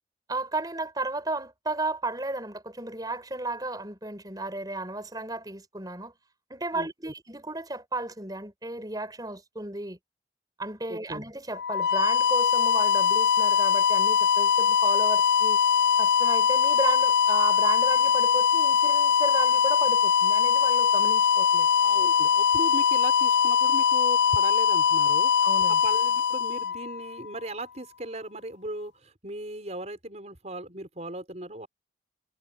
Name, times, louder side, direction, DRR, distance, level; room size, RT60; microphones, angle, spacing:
voice 1, 0.3-6.1 6.5-10.0 10.6-15.6 16.0-21.7 25.4-25.8, right 2 dB, 20° right, 5.8 m, -33 dB
voice 2, 6.7-7.1 10.9-11.2 21.8-25.3 25.8-31.7, right 1 dB, 40° right, 5.7 m, -38 dB
sound 1, 11.5-27.3, left 7 dB, 75° left, 0.5 m, -22 dB
head